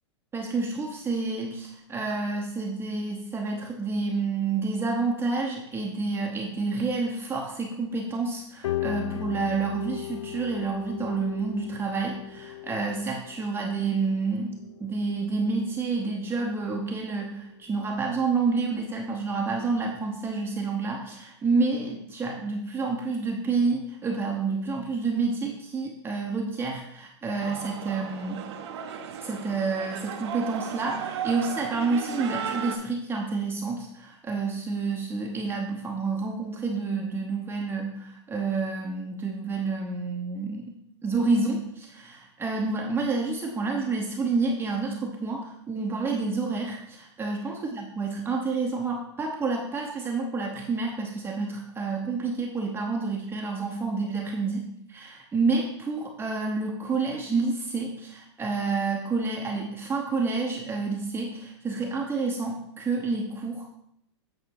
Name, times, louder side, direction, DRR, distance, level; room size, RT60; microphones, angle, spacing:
voice 1, 0.3-14.5 14.8-28.5 29.2-40.7 41.0-63.7, right 4 dB, 15° right, -1 dB, 0.9 m, -29 dB
sound 1, 8.6-19.1 19.3-20.2, left 13 dB, 90° left, 0.5 m, -38 dB
sound 2, 27.4-32.8, right 8 dB, 60° right, 1.0 m, -35 dB
8.5 x 4.3 x 4.7 m, 0.74 s
hypercardioid pair, 125°, 15 cm